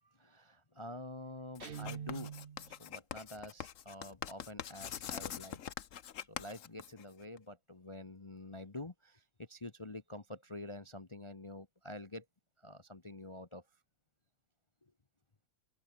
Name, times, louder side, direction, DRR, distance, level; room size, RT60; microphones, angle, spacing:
voice 1, 0.2-2.3 2.6-5.6 6.2-12.2 12.6-13.6, left 1 dB, 30° left, 0.5 m, -47 dB
Writing, 1.5-7.4, left 9 dB, 50° left, 1.1 m, -44 dB
Guitar, 1.6-2.8, right 8 dB, 55° right, 0.6 m, -44 dB
open air
omnidirectional pair, 2.1 m